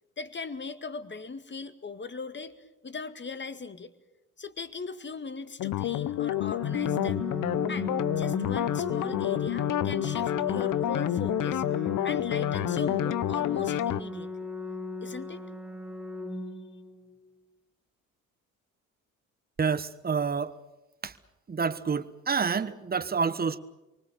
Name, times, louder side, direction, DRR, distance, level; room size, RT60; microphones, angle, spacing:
voice 1, 0.2-3.9 4.4-7.2 7.7-11.6 12.0-14.3 15.0-15.4, left 4 dB, 25° left, 2.0 m, -39 dB
Wind instrument woodwind instrument, 5.6-13.8, left 1 dB, 75° left, 7.1 m, -48 dB
sound 1, 5.6-14.0, left 13 dB, 45° left, 0.9 m, -29 dB
Organ, 6.3-17.3, left 1 dB, 5° right, 2.1 m, -37 dB
voice 2, 19.6-20.6 21.0-21.1 21.5-23.6, right 5 dB, 20° right, 1.3 m, -28 dB
28.0 x 24.0 x 6.9 m
figure-of-eight pair, 50°, 43 cm